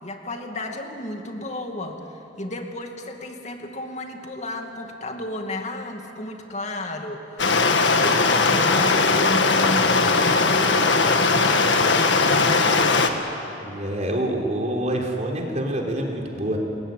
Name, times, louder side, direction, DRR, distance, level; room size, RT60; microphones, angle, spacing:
voice 1, 0.0-11.9 12.4-12.8, left 1 dB, 40° left, 4 dB, 2.5 m, -33 dB
Stream, 7.4-13.1, left 3 dB, 75° left, 1.8 m, -19 dB
voice 2, 13.6-16.6, right 1 dB, 40° right, 1 dB, 3.7 m, -26 dB
28.0 x 21.5 x 9.2 m, 3.0 s
head